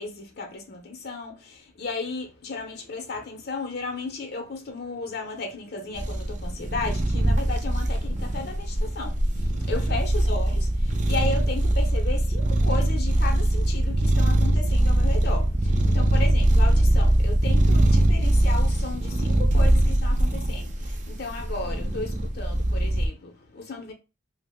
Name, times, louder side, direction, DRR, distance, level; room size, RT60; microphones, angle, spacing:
voice 1, 0.0-23.9, left 3 dB, 60° left, 0.6 m, -34 dB
sound 1, 5.9-23.1, right 1 dB, 40° right, 0.5 m, -22 dB
2.9 x 2.0 x 3.4 m
head